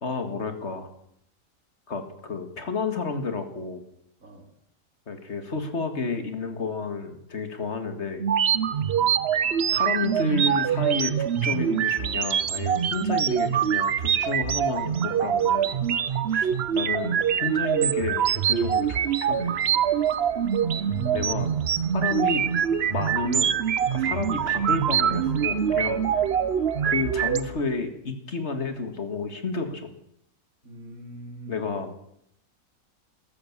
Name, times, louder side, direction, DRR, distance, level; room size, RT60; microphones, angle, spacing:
voice 1, 0.0-0.9 1.9-3.8 5.1-8.2 9.7-15.7 16.3-19.5 21.1-21.5 21.9-22.5 22.9-23.6 23.9-26.1 26.8-29.9 31.5-31.9, left 4 dB, 50° left, 7 dB, 2.1 m, -31 dB
sound 1, 8.2-27.4, right 8 dB, 55° right, 0.9 m, -24 dB
sound 2, 8.3-27.6, left 2 dB, ahead, 5.3 m, -48 dB
voice 2, 20.6-21.6 30.6-31.7, right 2 dB, 70° right, 1 dB, 3.8 m, -42 dB
14.0 x 13.5 x 7.3 m, 0.74 s
omnidirectional pair, 1.5 m